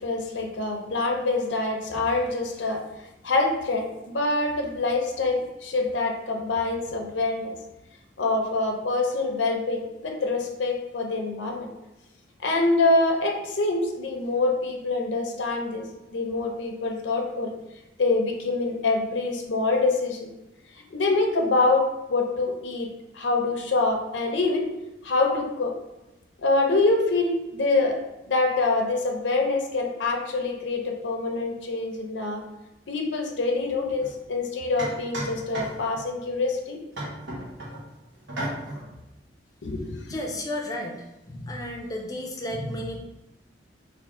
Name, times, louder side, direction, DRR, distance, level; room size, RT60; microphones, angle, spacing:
voice 1, 0.0-2.8 3.2-7.5 8.2-11.7 12.4-15.9 16.1-17.5 18.0-20.3 20.9-22.9 23.1-24.6 25.0-25.7 26.4-28.0 28.3-32.4 32.9-36.8 39.6-40.0, left 3 dB, 90° left, 2 dB, 0.6 m, -25 dB
sound 1, 34.0-34.1 34.8-36.1 36.9-37.8 38.3-38.9, right 1 dB, 85° right, 1.0 m, -34 dB
voice 2, 40.1-43.0, left 1 dB, 20° left, 1 dB, 0.4 m, -33 dB
3.4 x 2.5 x 3.6 m, 0.95 s
head